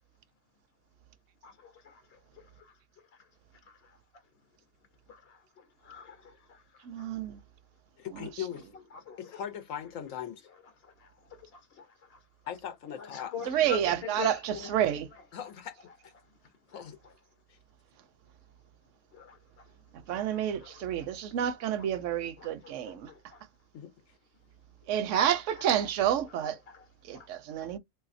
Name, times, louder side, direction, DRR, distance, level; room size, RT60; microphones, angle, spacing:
voice 1, 1.4-4.3 5.1-7.1 8.7-9.4 10.4-12.3 12.9-15.5 15.8-17.2 19.1-21.2 21.6-23.5 25.3-26.9 27.1-27.7, left 7 dB, 55° left, 1.0 m, -47 dB
voice 2, 6.8-7.4 8.1-8.4 13.5-15.1 19.9-23.1 24.9-26.6 27.0-27.8, right 10 dB, 75° right, 0.9 m, -29 dB
voice 3, 8.0-8.6 9.2-10.5 12.5-13.3 15.3-15.7 16.0-16.1 16.7-17.0 23.7-23.9, left 9 dB, 80° left, 1.1 m, -39 dB
3.3 x 2.7 x 2.5 m
omnidirectional pair, 1.3 m